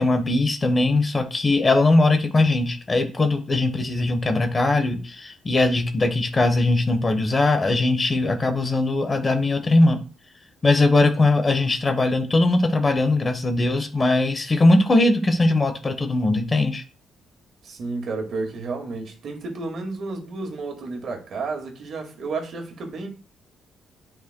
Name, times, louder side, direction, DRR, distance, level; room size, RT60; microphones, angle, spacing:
voice 1, 0.0-10.0 10.6-16.8, left 2 dB, 30° left, 1.1 m, -20 dB
voice 2, 17.6-23.1, right 3 dB, 60° right, 1.9 m, -31 dB
9.3 x 5.0 x 2.2 m
cardioid pair, 90°, 0 cm